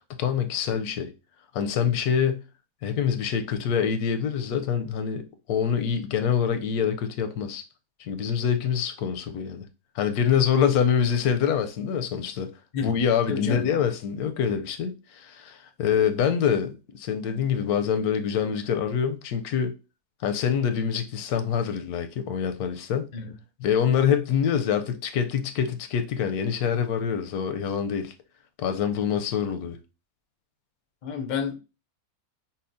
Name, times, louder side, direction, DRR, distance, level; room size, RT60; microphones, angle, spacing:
voice 1, 0.2-1.1 1.5-2.4 2.8-7.6 8.0-9.6 9.9-12.5 12.8-19.7 20.2-23.1 23.6-28.1 28.6-29.8, left 7 dB, 85° left, 1.1 m, -25 dB
voice 2, 13.3-13.8 23.1-23.3 31.0-31.6, left 7 dB, 60° left, 0.4 m, -30 dB
5.5 x 2.2 x 2.6 m
omnidirectional pair, 1.6 m